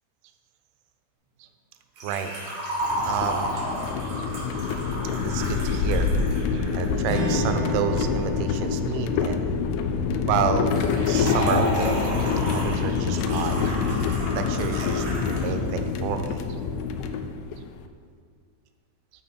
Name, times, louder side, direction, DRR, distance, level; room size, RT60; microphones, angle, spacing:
Liquid, 2.0-6.9 10.7-15.5 15.8-15.9 16.8-16.9, equal, 45° right, 2.0 m, -32 dB
voice 1, 2.0-2.3 3.0-3.6 5.2-6.1 6.7-9.6 10.3-10.7 11.1-12.1 12.5-13.7 14.4-16.4, right 8 dB, 85° right, 8 dB, 3.0 m, -29 dB
sound 1, 2.8-17.8, left 5 dB, 85° left, 2.9 m, -26 dB
Strum, 7.1-11.7, right 1 dB, 65° right, 3.1 m, -35 dB
10.0 x 5.1 x 4.3 m, 2.1 s
omnidirectional pair, 5.5 m